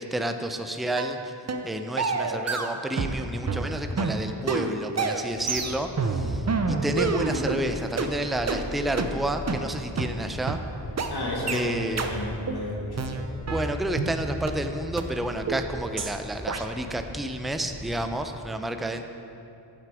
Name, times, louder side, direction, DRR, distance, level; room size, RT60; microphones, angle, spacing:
voice 1, 0.0-1.3 1.6-10.6 11.5-12.0 13.5-19.0, right 1 dB, ahead, 6 dB, 0.5 m, -30 dB
sound 1, 1.0-1.2 1.5-1.7 2.0-3.2 3.5-7.6 8.0-8.1 8.5-8.6 9.0-9.1 9.5-9.6 10.0-10.1 10.5-10.6 11.0-11.1 11.5-11.6 12.0-12.1 12.5-12.6 13.0-14.1 14.5-14.6 15.0-15.1 15.5-15.6 16.0-16.1 16.5-16.6, right 4 dB, 35° right, 0.7 m, -28 dB
sound 2, 5.3-18.2, left 1 dB, 30° left, 2.3 m, -40 dB
voice 2, 11.1-13.1, left 1 dB, 55° left, -3 dB, 1.9 m, -32 dB
9.3 x 7.6 x 4.9 m, 2.7 s
cardioid pair, 70°, 46 cm